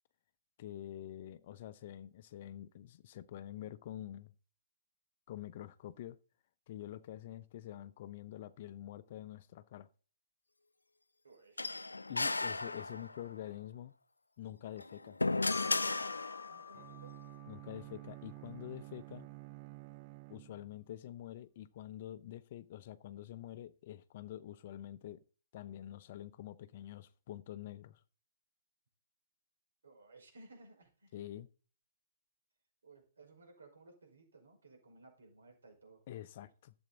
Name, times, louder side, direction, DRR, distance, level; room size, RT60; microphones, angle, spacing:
voice 1, 0.6-4.3 5.3-6.2 6.7-9.9 12.1-13.9 14.4-15.2 17.5-19.3 20.3-25.2 25.5-28.0 31.1-31.5 36.1-36.7, left 12 dB, 45° left, 0.7 m, -47 dB
voice 2, 11.2-11.7 12.9-13.3 16.5-17.1 29.8-31.3 32.8-36.0, right 2 dB, 75° right, 5.2 m, -59 dB
sound 1, 11.6-13.3 14.7-16.7, left 3 dB, 85° left, 0.4 m, -35 dB
Marimba xylophone, 15.5-18.3, left 20 dB, 30° left, 1.1 m, -49 dB
Bowed string instrument, 16.7-20.9, right 23 dB, 35° right, 0.4 m, -51 dB
12.0 x 8.0 x 4.0 m
figure-of-eight pair, 125°, 0 cm